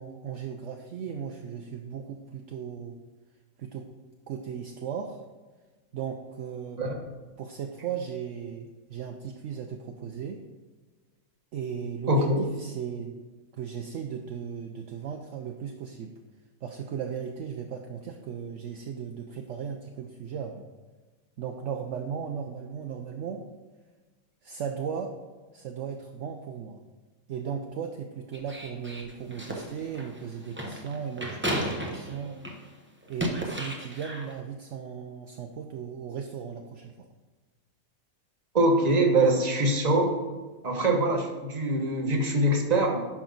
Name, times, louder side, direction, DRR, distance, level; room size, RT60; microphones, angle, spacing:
voice 1, 0.0-3.0 3.6-3.9 4.3-5.2 5.9-6.8 7.4-10.4 11.5-13.2 13.6-16.1 16.6-20.7 21.4-23.5 24.4-25.1 25.5-26.8 27.3-32.4 33.1-37.1, right 7 dB, 65° right, 4 dB, 0.9 m, -36 dB
voice 2, 12.1-12.4 38.5-40.1 40.6-43.0, right 1 dB, 30° right, 1 dB, 1.3 m, -23 dB
sound 1, 28.3-32.7 33.0-34.3, equal, 10° right, 0.9 m, -34 dB
10.5 x 6.0 x 3.9 m, 1.3 s
omnidirectional pair, 1.5 m